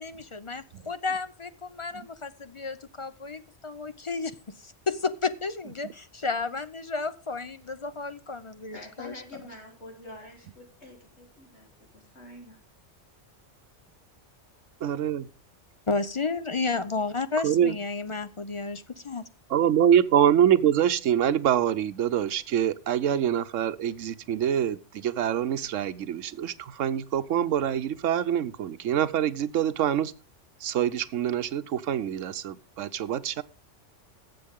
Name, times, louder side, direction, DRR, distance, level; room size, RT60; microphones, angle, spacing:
voice 1, 0.0-4.3 4.6-9.2 15.9-19.2, left 4 dB, 40° left, 12 dB, 0.5 m, -32 dB
voice 2, 8.7-11.7 11.9-12.6, left 1 dB, 65° left, -1 dB, 4.0 m, -46 dB
voice 3, 14.8-15.2 17.4-17.8 19.5-30.1 30.6-33.4, right 10 dB, 85° right, 13 dB, 1.1 m, -25 dB
19.0 x 7.7 x 3.6 m, 0.34 s
omnidirectional pair, 1.3 m